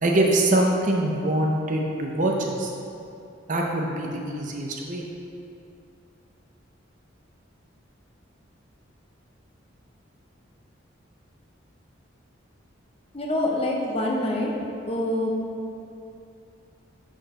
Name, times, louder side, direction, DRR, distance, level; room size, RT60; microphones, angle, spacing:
voice 1, 0.0-2.7 3.5-5.1, right 1 dB, 40° right, 0 dB, 0.6 m, -24 dB
voice 2, 13.1-14.5 14.9-15.3, left 1 dB, 30° left, -1 dB, 0.6 m, -25 dB
6.1 x 4.6 x 4.8 m, 2.6 s
head